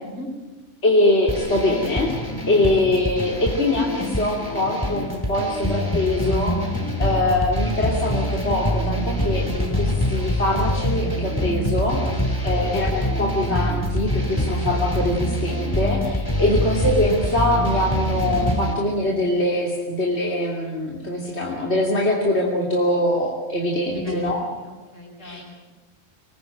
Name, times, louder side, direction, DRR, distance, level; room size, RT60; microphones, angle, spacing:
voice 1, 0.8-2.1 2.5-12.2 12.4-24.4 25.2-25.4, left 1 dB, 60° left, -2 dB, 3.3 m, -23 dB
sound 1, 1.3-18.7, equal, 15° left, 3.1 m, -25 dB
voice 2, 23.9-25.7, left 1 dB, 80° left, 0 dB, 7.0 m, -36 dB
25.5 x 20.0 x 9.3 m, 1.2 s
omnidirectional pair, 1.3 m